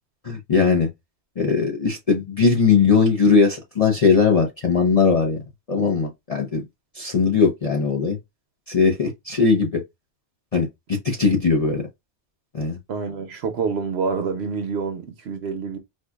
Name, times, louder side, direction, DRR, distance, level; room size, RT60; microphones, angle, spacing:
voice 1, 0.2-0.9 1.4-5.4 5.7-6.6 7.0-8.2 8.7-9.8 10.5-11.8 12.5-12.8, left 5 dB, 35° left, 0.7 m, -19 dB
voice 2, 12.9-15.8, right 5 dB, 65° right, 0.9 m, -27 dB
4.4 x 2.4 x 2.3 m
omnidirectional pair, 1.2 m